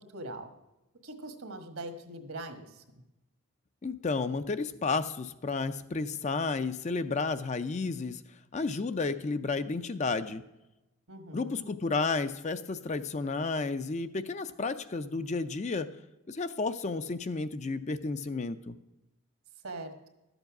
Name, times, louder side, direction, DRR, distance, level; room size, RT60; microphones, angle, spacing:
voice 1, 0.1-0.5 1.0-2.8 11.1-11.7 19.6-20.1, right 2 dB, 70° right, 6 dB, 1.4 m, -42 dB
voice 2, 3.8-8.2 8.5-10.4 11.3-15.9 16.3-18.8, left 4 dB, 30° left, 11 dB, 0.4 m, -32 dB
12.5 x 8.0 x 5.9 m, 0.99 s
head